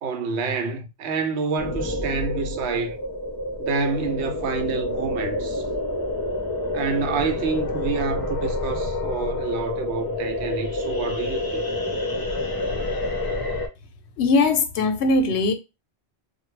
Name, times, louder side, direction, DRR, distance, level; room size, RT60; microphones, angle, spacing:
voice 1, 0.0-3.0 3.6-5.6 6.7-11.6, right 4 dB, 85° right, 0.8 m, -28 dB
sound 1, 1.6-13.7, left 2 dB, 30° left, 0.4 m, -28 dB
voice 2, 14.2-15.5, left 3 dB, 90° left, 0.9 m, -20 dB
2.2 x 2.1 x 3.1 m
omnidirectional pair, 1.1 m